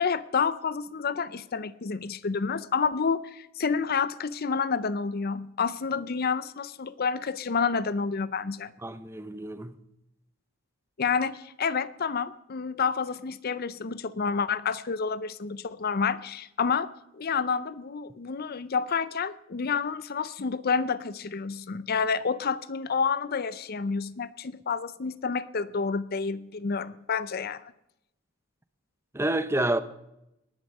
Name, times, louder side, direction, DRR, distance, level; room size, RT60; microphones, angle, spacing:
voice 1, 0.0-8.7 11.0-27.7, left 5 dB, 45° left, 0.5 m, -29 dB
voice 2, 8.8-9.7 29.1-29.8, right 1 dB, 10° right, 0.7 m, -28 dB
19.0 x 10.5 x 5.4 m
head